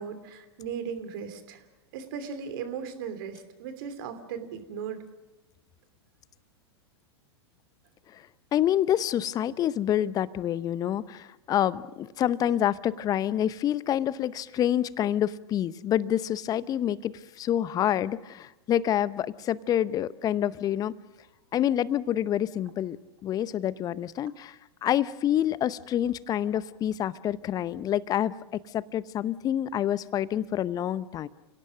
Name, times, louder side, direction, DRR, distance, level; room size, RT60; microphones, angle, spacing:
voice 1, 0.0-1.6 1.9-5.0, right 7 dB, 55° right, 9 dB, 3.0 m, -37 dB
voice 2, 8.5-20.9 21.5-23.0 23.2-31.3, left 11 dB, 25° left, 18 dB, 0.8 m, -27 dB
30.0 x 17.5 x 6.3 m, 1.0 s
figure-of-eight pair, 100°, 14 cm